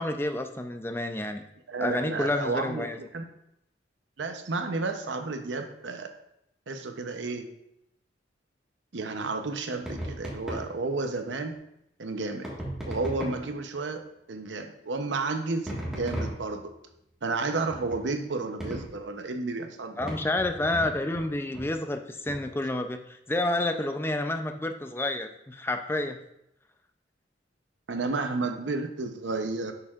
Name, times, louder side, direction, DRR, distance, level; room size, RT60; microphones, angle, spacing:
voice 1, 0.0-1.4 1.8-3.0 20.0-26.2, left 2 dB, 15° left, 7 dB, 0.4 m, -29 dB
voice 2, 1.7-3.2 4.2-6.1 6.7-7.5 8.9-11.6 12.0-12.5 12.9-16.7 17.2-20.1 27.9-29.7, right 3 dB, 80° right, 6 dB, 0.7 m, -32 dB
sound 1, 9.8-10.7 12.4-13.6 15.7-16.7 17.7-18.0 18.6-19.0 20.0-21.3 21.5-21.7 22.3-22.5, equal, 5° right, 1.5 m, -36 dB
7.2 x 6.7 x 2.4 m, 0.79 s
head